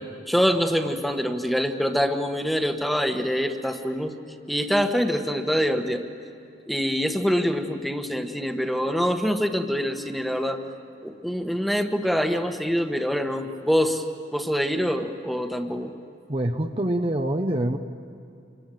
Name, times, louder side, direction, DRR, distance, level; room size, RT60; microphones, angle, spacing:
voice 1, 0.3-4.1 4.5-6.0 6.7-10.6 11.0-14.0 14.3-15.9, equal, ahead, 5 dB, 1.3 m, -25 dB
voice 2, 16.3-17.8, right 1 dB, 30° right, 5 dB, 0.9 m, -25 dB
27.5 x 23.5 x 9.2 m, 2.6 s
head